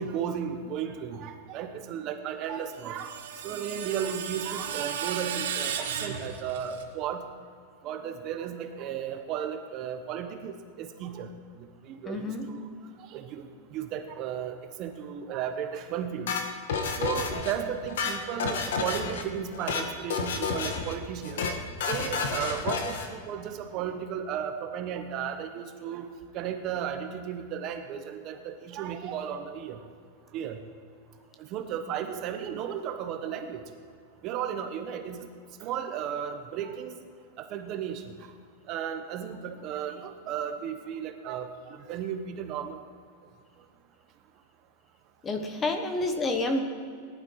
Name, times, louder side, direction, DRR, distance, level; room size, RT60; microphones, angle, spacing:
voice 1, 0.0-3.1 3.4-7.2 7.8-11.3 11.8-12.7 13.1-16.4 17.0-21.4 21.9-26.1 26.3-29.8 30.3-30.6 31.5-33.6 34.2-35.3 35.6-36.9 37.4-38.1 38.7-42.8, right 8 dB, 30° right, 6 dB, 0.9 m, -34 dB
Screech, 2.5-6.8, right 8 dB, 85° right, 1.8 m, -35 dB
voice 2, 12.1-12.5 45.2-46.6, left 2 dB, 15° left, 6 dB, 1.0 m, -29 dB
sound 1, 16.3-17.5 17.8-19.2 19.5-19.9 20.1-20.9 21.2-21.5 21.8-23.1, left 5 dB, 80° left, 1.6 m, -30 dB
18.5 x 11.5 x 4.7 m, 2.2 s
supercardioid pair, 170°, 0 cm